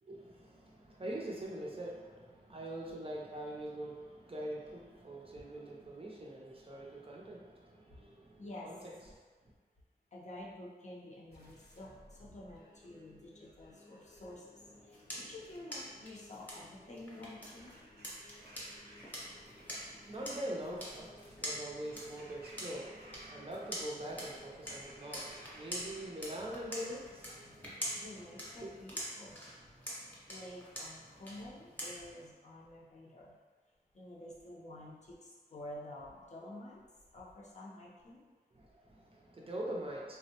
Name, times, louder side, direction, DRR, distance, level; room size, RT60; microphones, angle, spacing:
voice 1, 0.0-8.8 9.1-9.2 19.2-28.0 28.6-28.7 38.6-40.2, right 1 dB, 35° right, -3 dB, 0.5 m, -44 dB
voice 2, 8.4-8.7 10.1-17.7 27.9-29.4 30.3-33.4 33.9-36.8 37.1-38.2, left 1 dB, 45° left, -5 dB, 0.6 m, -50 dB
sound 1, 11.3-28.6, left 2 dB, 75° left, 0.9 m, -60 dB
sound 2, 14.6-32.3, equal, 10° left, 0.8 m, -46 dB
Bird vocalization bird call bird song / Crow, 17.4-27.3, right 1 dB, 75° right, 0.6 m, -60 dB
3.5 x 2.1 x 2.8 m, 1.4 s
wide cardioid pair, 120°, 17 cm